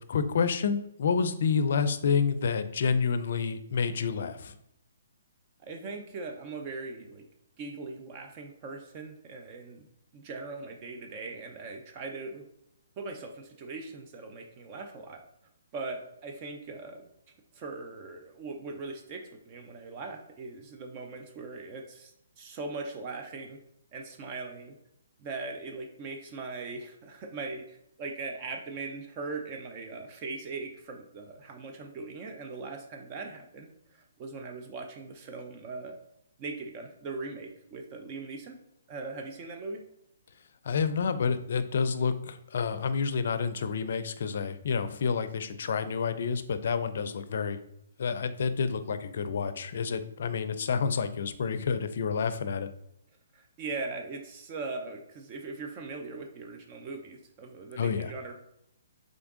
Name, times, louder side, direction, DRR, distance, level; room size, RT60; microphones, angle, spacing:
voice 1, 0.1-4.5 40.7-47.6 48.0-52.7 57.8-58.1, left 5 dB, 60° left, 11 dB, 0.4 m, -29 dB
voice 2, 5.6-7.2 7.6-9.9 10.1-12.4 13.0-15.2 15.7-17.0 17.5-23.6 23.9-24.7 25.2-36.0 36.4-38.6 38.9-39.8 53.3-58.4, right 3 dB, 30° right, 3 dB, 0.5 m, -40 dB
3.8 x 3.4 x 3.6 m, 0.77 s
hypercardioid pair, 145°, 0 cm